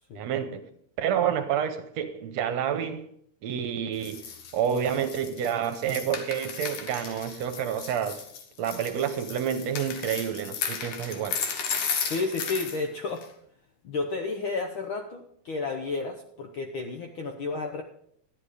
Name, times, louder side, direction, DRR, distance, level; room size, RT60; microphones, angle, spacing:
voice 1, 0.2-0.6 1.0-3.1 3.4-4.2 4.5-8.2 8.6-11.4, right 9 dB, 70° right, 1.9 m, -29 dB
sound 1, 4.0-12.8 13.2-13.3, left 6 dB, 85° left, 2.9 m, -35 dB
voice 2, 12.0-13.2 13.8-17.8, left 3 dB, 65° left, 1.3 m, -32 dB
13.0 x 10.5 x 4.9 m
omnidirectional pair, 3.4 m